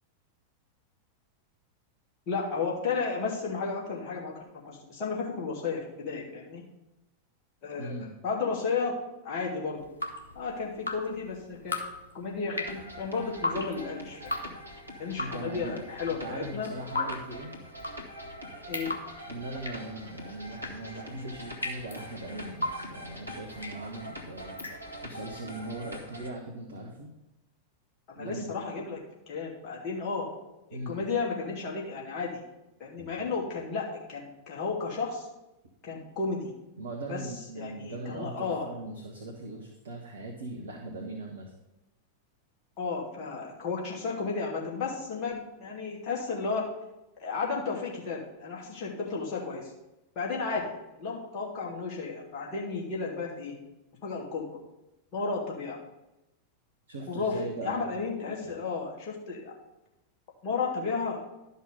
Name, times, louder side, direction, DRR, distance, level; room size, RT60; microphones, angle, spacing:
voice 1, 2.3-4.3 4.6-6.6 7.6-8.9 9.2-9.8 10.3-11.8 12.1-14.5 15.0-16.7 18.7-18.9 28.1-29.0 29.3-30.3 30.7-32.4 32.8-35.3 35.8-36.5 37.1-37.2 37.6-38.7 42.8-46.7 47.2-49.7 50.2-50.7 51.0-53.5 54.0-54.4 55.1-55.8 57.1-59.5 60.4-61.2, left 4 dB, 40° left, -3 dB, 2.6 m, -33 dB
voice 2, 7.8-8.1 15.2-15.8 16.2-17.5 19.3-24.6 25.0-27.1 28.2-28.5 30.7-31.0 33.0-33.1 36.8-41.5 56.9-57.9 58.4-58.6, right 2 dB, 65° right, 1 dB, 1.3 m, -39 dB
Drip, 9.8-25.2, left 2 dB, 75° left, 1.3 m, -38 dB
sound 1, 12.6-26.3, equal, 85° right, 1.3 m, -44 dB
11.5 x 5.5 x 5.2 m, 0.95 s
figure-of-eight pair, 90°, 0 cm